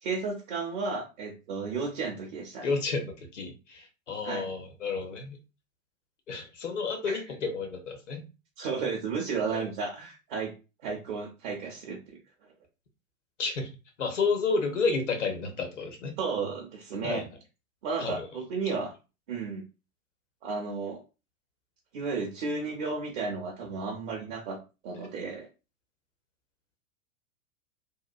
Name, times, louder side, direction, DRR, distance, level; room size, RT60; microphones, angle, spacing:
voice 1, 0.0-2.7 4.2-4.5 7.1-7.2 8.6-10.5 10.8-12.2 16.2-17.2 17.8-18.9 19.3-19.6 20.4-21.0 21.9-25.5, right 4 dB, 40° right, -1 dB, 0.6 m, -33 dB
voice 2, 2.6-5.4 6.3-8.2 9.5-9.6 13.4-13.7 14.0-16.2 17.0-17.3 18.0-18.2, left 4 dB, 65° left, 4 dB, 0.9 m, -31 dB
2.8 x 2.1 x 2.4 m, 0.30 s
figure-of-eight pair, 100°, 39 cm